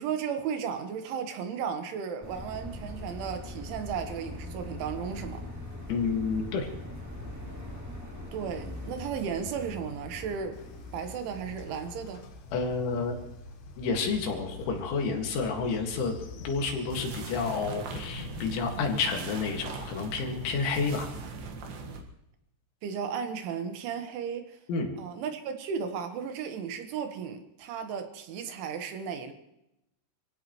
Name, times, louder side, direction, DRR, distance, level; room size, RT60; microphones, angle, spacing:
voice 1, 0.0-5.4 8.3-10.6 10.9-12.2 22.8-24.6 25.0-29.3, right 7 dB, 85° right, 6 dB, 3.9 m, -35 dB
sound 1, 2.2-11.8, left 1 dB, 5° right, 1.3 m, -41 dB
voice 2, 5.9-6.7 12.5-13.2 13.8-16.1 16.4-21.1 24.7-24.9, left 4 dB, 85° left, 3 dB, 4.5 m, -30 dB
Train, 10.5-20.5, left 3 dB, 70° left, 2.9 m, -45 dB
sound 2, 16.9-22.0, right 4 dB, 65° right, 3.3 m, -40 dB
26.5 x 16.5 x 3.2 m, 0.84 s
omnidirectional pair, 5.3 m